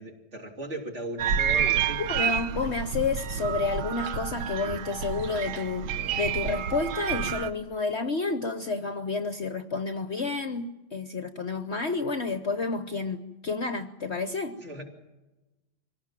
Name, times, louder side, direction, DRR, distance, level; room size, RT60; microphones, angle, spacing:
voice 1, 0.0-2.0 14.6-14.8, right 1 dB, 40° right, 1 dB, 3.4 m, -37 dB
sound 1, 1.2-7.5, right 8 dB, 90° right, 1.5 m, -29 dB
voice 2, 2.0-14.6, left 4 dB, 50° left, 9 dB, 1.0 m, -30 dB
25.0 x 18.0 x 7.5 m, 1.1 s
omnidirectional pair, 1.8 m